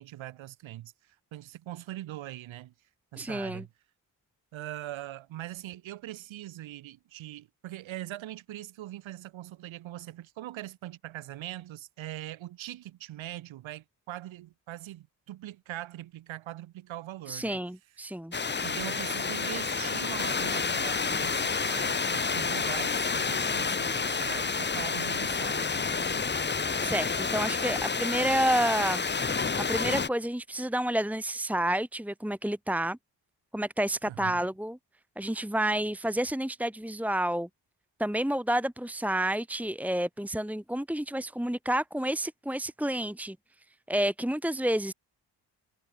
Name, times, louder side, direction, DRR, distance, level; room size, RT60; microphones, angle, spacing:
voice 1, 0.0-2.7 3.1-3.7 4.5-17.6 18.6-26.3 34.1-34.4, right 14 dB, 90° right, 2.3 m, -42 dB
voice 2, 3.2-3.6 17.3-18.3 26.8-33.0 33.5-34.8 35.2-37.5 38.0-43.4 43.9-44.9, right 1 dB, 5° right, 1.9 m, -30 dB
sound 1, 18.3-30.1, left 5 dB, 25° left, 0.9 m, -29 dB
cardioid pair, 60°, 45 cm